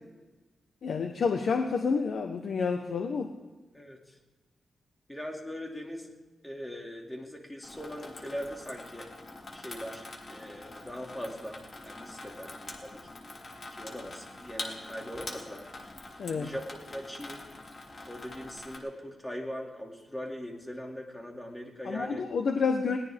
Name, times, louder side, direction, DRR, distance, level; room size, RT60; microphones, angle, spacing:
voice 1, 0.8-3.3 16.2-16.5 21.9-23.0, left 5 dB, 65° left, 4 dB, 1.2 m, -29 dB
voice 2, 3.7-4.2 5.1-6.1 6.4-9.1 9.5-13.2 13.8-15.6 16.3-17.4 18.1-22.3, equal, 10° left, 0 dB, 2.6 m, -41 dB
Water tap faucet / Sink (filling or washing), 7.6-18.8, left 2 dB, 35° left, 2.5 m, -44 dB
21.5 x 18.5 x 3.6 m, 1.2 s
wide cardioid pair, 160°, 0 cm